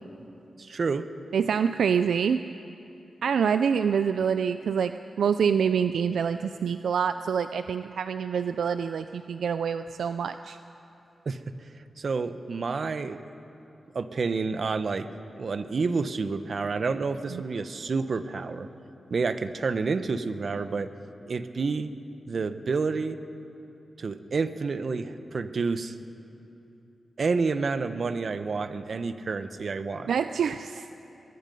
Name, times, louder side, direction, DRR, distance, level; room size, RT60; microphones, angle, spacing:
voice 1, 0.6-1.0 11.3-11.4 12.0-13.2 13.9-15.1 15.4-18.7 19.1-20.9 21.3-21.9 22.3-23.2 24.0-25.9 27.2-30.1, right 4 dB, 60° right, 11 dB, 1.0 m, -29 dB
voice 2, 1.3-2.4 3.2-4.9 5.2-10.6 17.3-17.4 30.1-31.0, right 7 dB, 85° right, 10 dB, 0.4 m, -26 dB
22.5 x 21.5 x 5.5 m, 2.9 s
cardioid pair, 60°, 0 cm